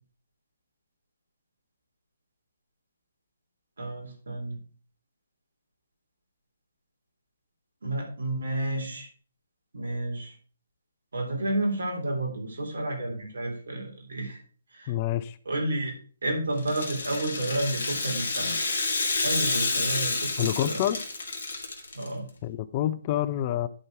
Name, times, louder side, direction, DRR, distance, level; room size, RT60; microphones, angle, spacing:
voice 1, 3.8-4.6 7.8-9.1 9.7-10.3 11.1-14.4 14.7-14.9 15.4-15.9 16.2-18.6 19.2-20.8 21.9-22.3, right 1 dB, 70° right, 3.6 m, -31 dB
voice 2, 14.9-15.4 20.4-21.0 22.4-23.7, left 12 dB, 30° left, 0.5 m, -27 dB
Rattle (instrument), 16.6-22.1, left 3 dB, 55° left, 2.1 m, -29 dB
11.0 x 4.5 x 4.7 m
figure-of-eight pair, 140°, 0 cm